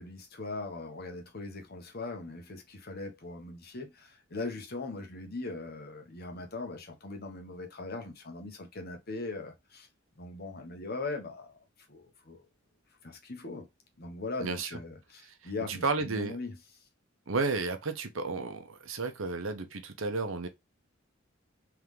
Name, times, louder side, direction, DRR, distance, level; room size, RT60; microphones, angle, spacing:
voice 1, 0.0-9.9 10.2-11.5 11.9-12.4 13.0-13.7 14.0-16.5, left 3 dB, 50° left, 1.3 m, -40 dB
voice 2, 14.4-14.8 15.2-16.4 17.3-20.5, right 3 dB, 80° right, 0.9 m, -33 dB
3.7 x 3.6 x 3.2 m
head